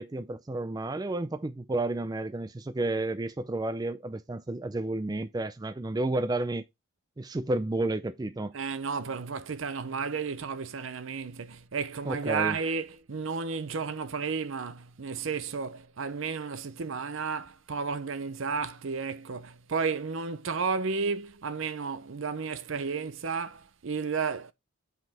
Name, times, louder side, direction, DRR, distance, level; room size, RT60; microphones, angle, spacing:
voice 1, 0.0-6.7 7.2-8.5 12.1-12.6, right 2 dB, 20° right, 0.3 m, -31 dB
voice 2, 8.5-24.5, right 5 dB, 65° right, 0.6 m, -32 dB
7.8 x 5.3 x 3.4 m
head